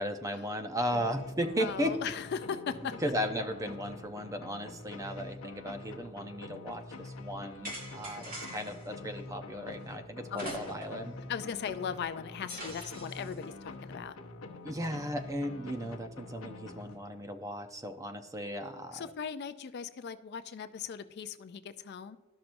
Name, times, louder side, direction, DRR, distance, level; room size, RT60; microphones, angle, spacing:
voice 1, 0.0-2.0 3.0-11.1 14.6-19.1, equal, 15° right, 7 dB, 0.6 m, -36 dB
sound 1, 0.9-17.4, left 2 dB, 80° left, 0.9 m, -46 dB
voice 2, 1.6-3.0 8.1-8.5 10.3-10.5 11.3-14.2 18.6-22.2, left 7 dB, 50° left, 11 dB, 0.4 m, -38 dB
sound 2, 7.6-8.9 10.3-11.1 11.4-11.5 12.5-13.3, right 1 dB, 40° right, 1.8 m, -42 dB
13.0 x 5.9 x 2.6 m, 1.3 s
head